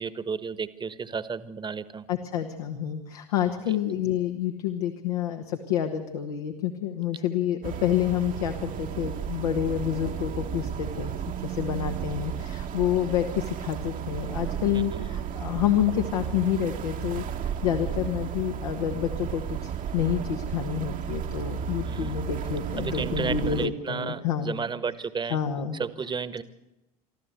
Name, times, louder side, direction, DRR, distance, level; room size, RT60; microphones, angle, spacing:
voice 1, 0.0-2.0 3.6-3.7 14.7-15.1 21.8-22.2 22.8-25.4 25.8-26.4, right 5 dB, 25° right, 15 dB, 1.3 m, -33 dB
voice 2, 2.1-11.1 11.4-24.6 25.3-25.8, left 10 dB, 75° left, 5 dB, 1.5 m, -28 dB
sound 1, 7.6-23.7, right 9 dB, 45° right, 1.3 m, -33 dB
25.0 x 13.5 x 8.2 m, 0.98 s
figure-of-eight pair, 70°, 20 cm